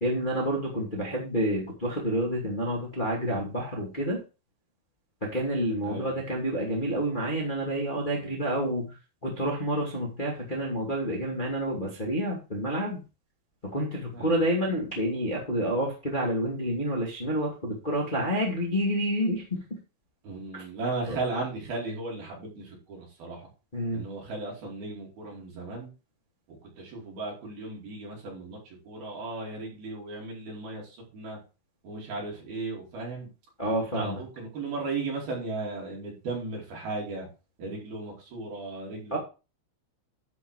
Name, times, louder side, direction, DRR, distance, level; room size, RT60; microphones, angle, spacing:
voice 1, 0.0-4.2 5.2-8.9 9.2-13.0 13.6-19.6 20.5-20.6 21.1-21.2 23.7-24.0 33.6-34.2 39.1-39.2, equal, 20° left, -2 dB, 1.2 m, -29 dB
voice 2, 5.8-6.2 14.1-14.4 20.2-23.5 23.9-25.9 26.5-31.4 31.8-33.3 33.9-37.3 37.6-39.2, right 3 dB, 50° right, -2 dB, 6.1 m, -36 dB
12.5 x 5.4 x 4.8 m, 0.31 s
omnidirectional pair, 5.7 m